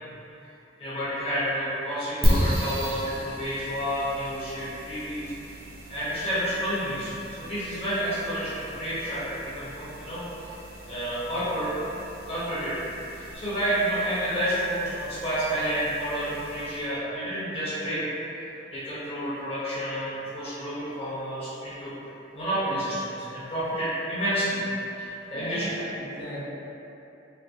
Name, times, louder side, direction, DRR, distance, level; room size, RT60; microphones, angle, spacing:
voice 1, 0.8-5.3 5.9-10.5 10.9-11.7 12.3-12.8 13.1-18.1 18.7-21.9 22.3-24.6 25.0-25.8, equal, 35° left, -11 dB, 1.0 m, -30 dB
sound 1, 2.2-16.9, equal, 55° right, 0.7 m, -34 dB
voice 2, 25.3-26.4, equal, 65° left, -10 dB, 0.6 m, -40 dB
3.2 x 2.8 x 2.6 m, 3.0 s
head